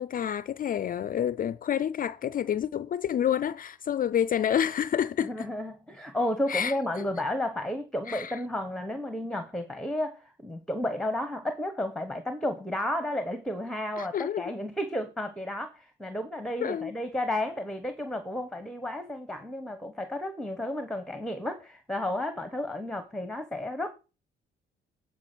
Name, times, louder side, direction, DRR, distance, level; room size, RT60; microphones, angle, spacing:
voice 1, 0.0-5.5 6.5-7.1 8.1-8.4 14.0-14.4 16.6-16.9, left 9 dB, 45° left, 0.4 m, -29 dB
voice 2, 5.2-23.9, left 1 dB, 5° left, 1.1 m, -32 dB
9.7 x 4.7 x 6.1 m
cardioid pair, 90°, 20 cm